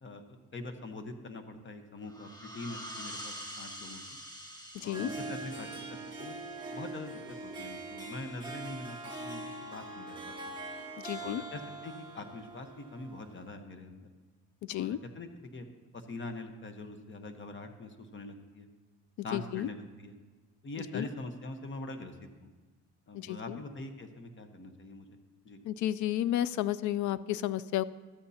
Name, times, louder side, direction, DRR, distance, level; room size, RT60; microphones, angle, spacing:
voice 1, 0.5-4.0 4.8-6.4 6.7-7.2 7.6-10.5 11.2-14.0 14.7-15.7 15.9-18.7 19.2-20.1 20.6-22.1 22.4-22.5 23.1-25.2 25.4-25.6, left 2 dB, 40° left, 6 dB, 1.2 m, -43 dB
sound 1, 2.0-7.4, equal, 15° left, 1.5 m, -46 dB
voice 2, 4.7-5.1 11.0-11.4 14.7-15.0 19.3-19.7 20.8-21.1 23.1-23.6 25.6-27.8, left 12 dB, 70° left, 17 dB, 0.5 m, -32 dB
Harp, 4.8-13.5, right 2 dB, 15° right, 1.7 m, -43 dB
14.0 x 12.5 x 2.8 m, 1.3 s
cardioid pair, 90°, 30 cm